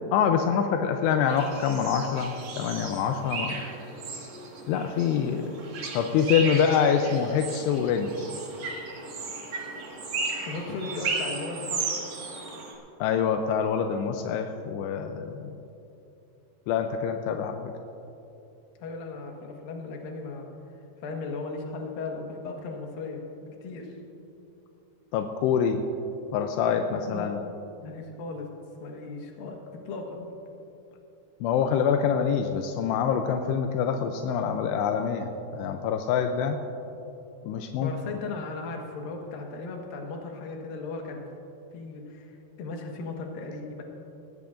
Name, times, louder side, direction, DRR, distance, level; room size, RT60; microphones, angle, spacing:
voice 1, 0.1-3.6 4.7-5.6 5.9-8.1 13.0-15.4 16.7-17.6 25.1-25.8 26.3-27.4 31.4-36.6 37.4-37.9, left 7 dB, 85° left, 5 dB, 2.7 m, -25 dB
sound 1, 1.3-12.7, right 4 dB, 50° right, 2.4 m, -35 dB
voice 2, 10.4-11.9 18.8-20.5 21.0-23.2 23.6-23.9 27.0-27.4 27.8-28.5 28.8-29.6 29.8-30.3 37.8-41.3 41.7-43.8, left 3 dB, 65° left, 1 dB, 3.0 m, -36 dB
20.0 x 16.0 x 2.5 m, 2.8 s
omnidirectional pair, 4.9 m